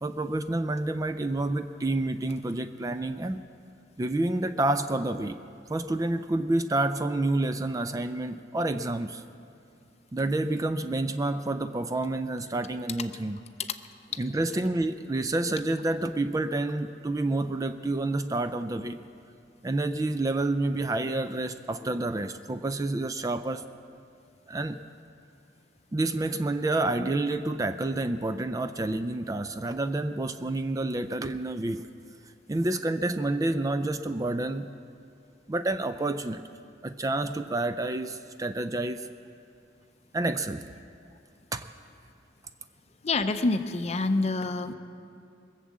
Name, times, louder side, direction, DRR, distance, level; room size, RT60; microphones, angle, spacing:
voice 1, 0.0-3.4 4.0-5.4 5.7-9.2 10.1-13.4 14.2-19.0 19.6-23.7 24.5-24.8 25.9-31.8 32.5-34.7 35.5-36.4 36.8-39.1 40.1-40.6 41.5-41.7, right 2 dB, 20° right, 10 dB, 0.3 m, -29 dB
voice 2, 43.0-44.7, left 3 dB, 35° left, 9 dB, 0.6 m, -26 dB
21.5 x 7.4 x 7.3 m, 2.4 s
head